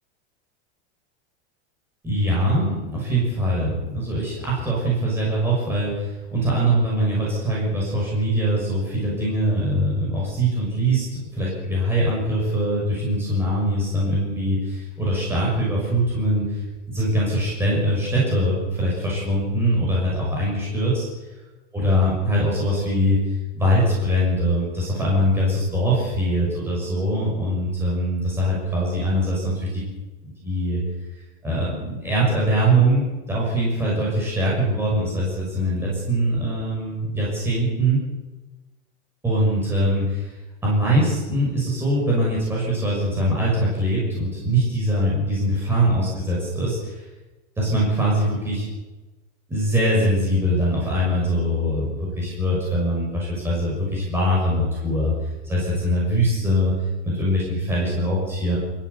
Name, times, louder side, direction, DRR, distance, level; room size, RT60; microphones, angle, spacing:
voice 1, 2.0-16.6 16.9-21.1 21.7-29.8 30.4-30.8 31.4-38.0 39.2-40.3 40.6-47.0 47.6-48.7 49.5-55.1 55.4-56.7 57.0-58.6, equal, 5° right, -5 dB, 6.1 m, -22 dB
28.0 x 15.0 x 6.8 m, 1.2 s
supercardioid pair, 175°, 35 cm